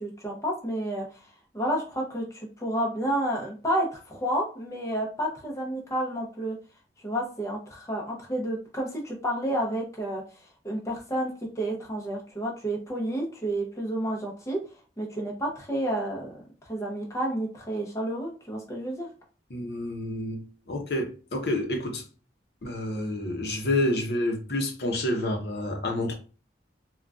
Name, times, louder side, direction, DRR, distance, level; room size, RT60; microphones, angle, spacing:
voice 1, 0.0-1.3 1.5-6.5 7.0-10.2 10.6-14.6 15.0-16.4 16.6-19.1, right 1 dB, 15° left, 0.6 m, -30 dB
voice 2, 19.5-20.4 20.7-22.0 22.6-26.1, left 1 dB, 60° left, 0.7 m, -28 dB
3.7 x 2.2 x 2.3 m
head